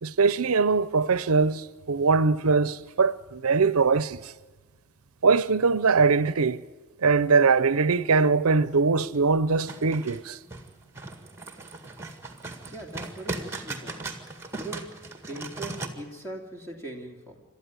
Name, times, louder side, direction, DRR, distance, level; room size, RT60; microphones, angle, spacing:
voice 1, 0.0-4.3 5.2-6.6 7.0-10.4, right 4 dB, 85° right, 0.7 m, -22 dB
sound 1, 9.6-15.9, right 3 dB, 10° right, 1.9 m, -38 dB
voice 2, 12.7-14.1 14.6-17.4, right 1 dB, 10° left, 2.9 m, -40 dB
28.0 x 13.0 x 9.6 m
head